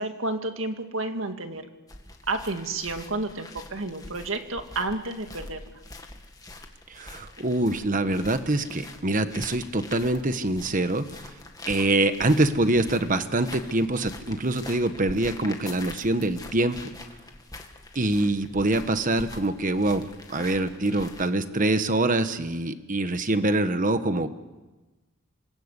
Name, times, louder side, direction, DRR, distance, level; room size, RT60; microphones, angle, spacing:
voice 1, 0.0-1.7 2.3-5.6, right 2 dB, 65° right, 6 dB, 2.1 m, -31 dB
sound 1, 1.9-21.3, left 2 dB, 15° left, 2.0 m, -44 dB
voice 2, 6.9-11.1 11.7-16.8 17.9-24.3, right 2 dB, 40° right, 10 dB, 1.2 m, -25 dB
26.5 x 20.0 x 8.3 m, 1.2 s
head